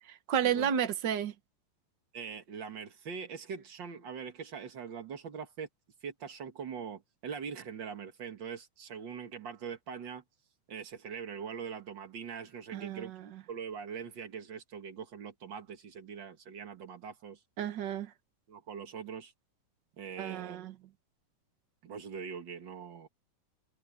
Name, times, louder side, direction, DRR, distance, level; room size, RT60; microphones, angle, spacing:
voice 1, 0.3-1.3 12.7-13.2 17.6-18.1 20.2-20.7, right 9 dB, 85° right, 0.9 m, -31 dB
voice 2, 2.1-5.7 6.0-10.2 10.7-13.1 13.5-17.4 18.5-19.3 20.0-20.7 21.8-23.1, right 6 dB, 40° right, 1.9 m, -42 dB
omnidirectional pair, 3.9 m